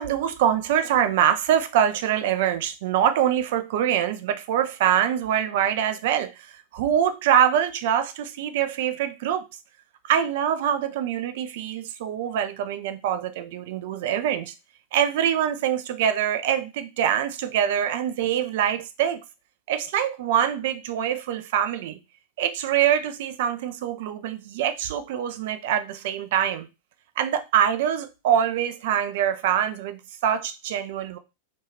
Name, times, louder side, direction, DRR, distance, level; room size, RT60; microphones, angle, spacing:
voice 1, 0.0-9.4 10.0-14.5 14.9-19.2 19.7-22.0 22.4-26.7 27.2-31.2, right 9 dB, 50° right, 0.3 m, -24 dB
2.5 x 2.3 x 3.1 m
figure-of-eight pair, 90°, 0 cm